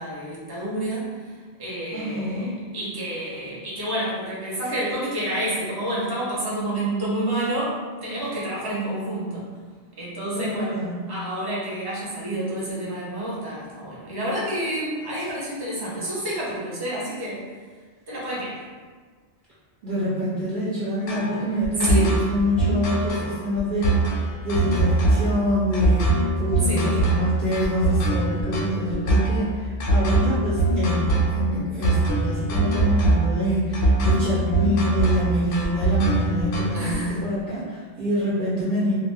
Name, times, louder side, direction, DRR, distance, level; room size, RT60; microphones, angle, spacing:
voice 1, 0.0-1.3 1.6-9.4 10.0-10.8 11.1-17.4 18.1-18.6 21.8-22.1 26.6-27.1 36.7-37.2, right 1 dB, 25° right, -7 dB, 0.7 m, -29 dB
voice 2, 1.9-2.5 10.3-11.0 19.8-39.0, equal, 55° right, -9 dB, 0.7 m, -26 dB
sound 1, 21.1-36.9, right 2 dB, 65° left, 0.7 m, -22 dB
2.4 x 2.2 x 3.2 m, 1.5 s
omnidirectional pair, 1.1 m